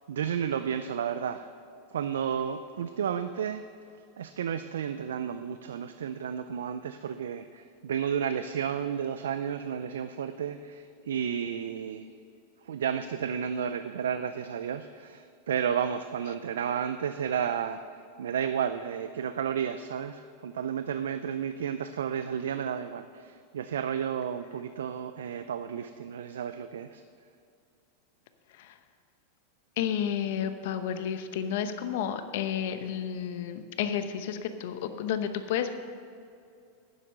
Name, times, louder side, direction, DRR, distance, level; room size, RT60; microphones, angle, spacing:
voice 1, 0.1-1.5 1.9-3.6 4.2-12.1 12.6-17.8 18.2-27.0, right 8 dB, 85° right, 10 dB, 0.4 m, -32 dB
voice 2, 29.8-35.7, left 9 dB, 70° left, 9 dB, 0.9 m, -31 dB
9.7 x 7.7 x 6.6 m, 2.5 s
hypercardioid pair, 115°, 0 cm